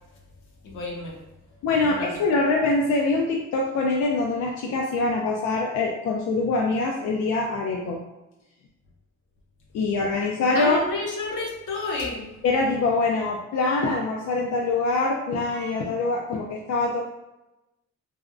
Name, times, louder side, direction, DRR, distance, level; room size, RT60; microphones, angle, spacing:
voice 1, 0.6-1.2 1.8-2.1 10.5-12.3, left 2 dB, 80° left, -1 dB, 0.9 m, -30 dB
voice 2, 1.6-8.0 9.7-10.8 12.4-17.0, left 3 dB, 65° left, 0 dB, 0.4 m, -24 dB
3.3 x 2.2 x 2.4 m, 0.97 s
cardioid pair, 90°, 30 cm